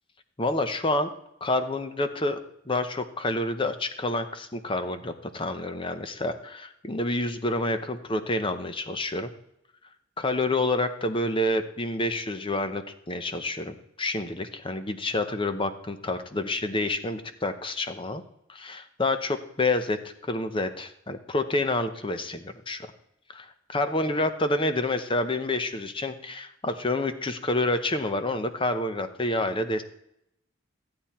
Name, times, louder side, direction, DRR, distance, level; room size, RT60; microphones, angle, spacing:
voice 1, 0.4-1.1 1.4-2.4 2.7-9.3 10.2-18.2 18.5-22.9 23.3-29.8, left 2 dB, 25° left, 9 dB, 0.8 m, -28 dB
15.0 x 8.8 x 4.4 m, 0.79 s
head